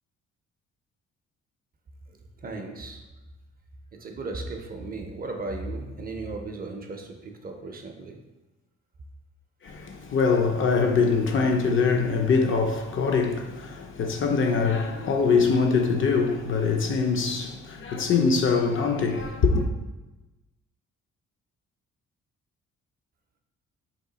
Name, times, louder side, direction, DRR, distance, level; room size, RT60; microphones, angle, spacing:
voice 1, 2.1-3.0 3.9-8.2, right 3 dB, 30° right, 0.4 m, -36 dB
voice 2, 9.6-19.7, left 5 dB, 45° left, 0.4 m, -23 dB
2.9 x 2.3 x 3.9 m
cardioid pair, 90°, 30 cm